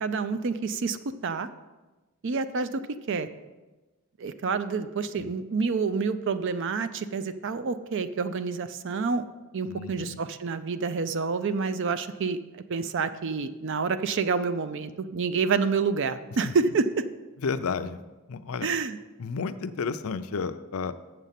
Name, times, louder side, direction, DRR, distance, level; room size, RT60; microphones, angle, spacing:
voice 1, 0.0-1.5 2.2-2.8 3.1-3.3 4.2-9.2 9.5-12.4 12.7-17.1 18.6-19.0, right 4 dB, 55° right, 12 dB, 0.5 m, -28 dB
voice 2, 9.7-10.2 16.4-16.5 17.4-18.0 18.3-18.7 19.2-20.9, left 5 dB, 70° left, 11 dB, 0.5 m, -32 dB
7.3 x 6.8 x 5.8 m, 1.2 s
head